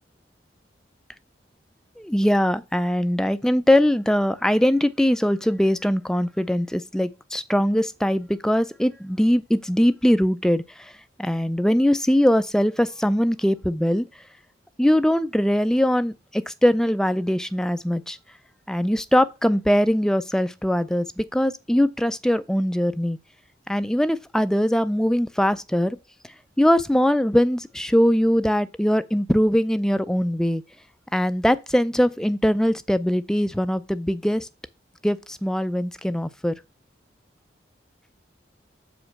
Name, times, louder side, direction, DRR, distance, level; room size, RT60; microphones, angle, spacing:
voice 1, 2.0-10.9 11.2-14.1 14.8-18.2 18.7-23.2 23.7-26.0 26.6-30.6 31.1-34.5 35.0-36.5, equal, 5° left, 0.4 m, -21 dB
7.3 x 5.1 x 5.8 m
head